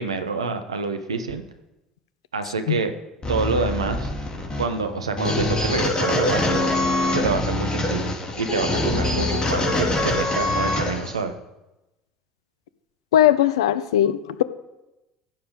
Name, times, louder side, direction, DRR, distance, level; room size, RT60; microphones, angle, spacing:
voice 1, 0.0-1.4 2.3-2.9 3.3-4.1 4.6-6.7 7.1-11.3, right 4 dB, 85° right, 8 dB, 1.0 m, -27 dB
sound 1, 3.2-11.2, left 2 dB, 30° left, 3.8 m, -24 dB
voice 2, 13.1-14.4, left 12 dB, 75° left, 14 dB, 0.7 m, -19 dB
14.5 x 7.0 x 5.2 m, 0.99 s
figure-of-eight pair, 65°, 3 cm